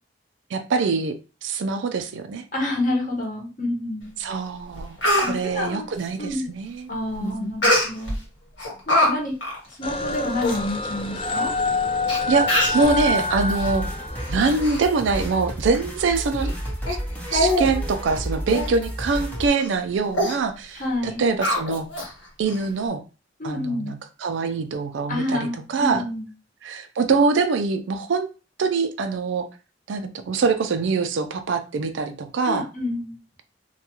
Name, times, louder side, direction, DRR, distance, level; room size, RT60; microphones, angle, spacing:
voice 1, 0.5-1.1 1.4-2.4 4.2-6.9 7.2-7.5 12.3-13.9 14.3-16.5 16.9-17.0 17.3-21.9 22.4-23.0 23.4-26.0 26.6-28.3 28.6-29.5 29.9-32.7, right 4 dB, 80° right, 8 dB, 0.4 m, -24 dB
voice 2, 2.5-4.1 5.2-5.9 6.2-6.5 6.9-8.2 8.9-9.3 9.7-11.5 20.7-21.2 23.4-23.9 25.1-26.3 32.5-33.2, left 1 dB, 45° left, 0 dB, 0.9 m, -28 dB
Speech, 4.3-4.4 4.8-5.3 7.6-8.2 8.6-9.1 9.4-9.6 10.1-10.2 10.4-10.6 11.4-11.5 12.1-12.2 12.5-12.9 13.5-13.7 14.2-14.8 15.1-15.3 15.7-15.8 16.4-16.5 16.9-17.0 17.3-17.7 18.0-18.1 18.5-18.7 19.1-19.2 19.6-19.8 20.1-20.4 21.4-22.1 22.5-22.6, left 1 dB, 85° left, 1.3 m, -23 dB
sound 1, 9.8-14.7, left 3 dB, 30° left, 0.3 m, -27 dB
sound 2, 12.8-19.5, equal, 10° left, 0.7 m, -31 dB
2.3 x 2.3 x 2.8 m, 0.32 s
head